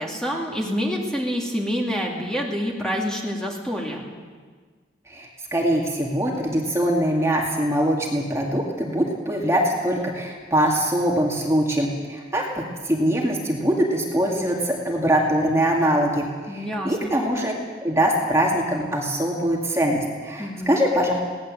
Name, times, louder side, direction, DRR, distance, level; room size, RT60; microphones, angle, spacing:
voice 1, 0.0-4.0 16.5-17.1 20.4-20.7, equal, 5° left, -1 dB, 2.4 m, -27 dB
voice 2, 5.1-17.5 17.8-21.1, equal, 15° right, -1 dB, 2.2 m, -23 dB
21.5 x 18.0 x 7.6 m, 1.5 s
head